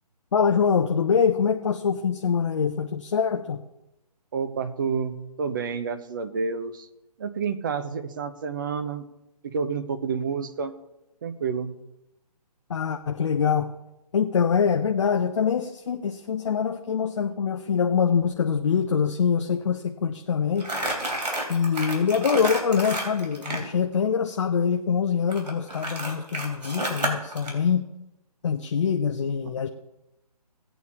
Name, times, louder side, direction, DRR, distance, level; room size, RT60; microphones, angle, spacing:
voice 1, 0.3-3.6 12.7-13.7 14.1-20.7 21.5-27.8 28.4-29.7, left 6 dB, 45° left, 4 dB, 0.6 m, -24 dB
voice 2, 4.3-6.9 7.2-9.1 9.4-10.7 11.2-11.8, right 5 dB, 30° right, 10 dB, 0.7 m, -29 dB
Crumpling crinkling, 20.6-23.7 25.3-27.5, right 1 dB, 85° right, 3.4 m, -30 dB
17.5 x 8.7 x 2.8 m, 0.91 s
hypercardioid pair, 160°, 21 cm